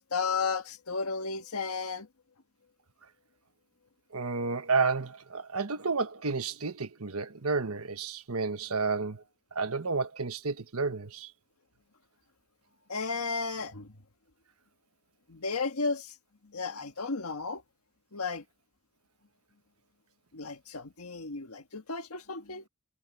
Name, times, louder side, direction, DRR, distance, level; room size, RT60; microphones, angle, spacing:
voice 1, 0.0-2.1 12.9-14.0 15.3-16.1 16.4-17.6 18.1-18.4 20.3-22.6, left 4 dB, 85° left, 1.6 m, -33 dB
voice 2, 4.1-9.2 9.5-11.3, right 4 dB, 80° right, 1.3 m, -31 dB
head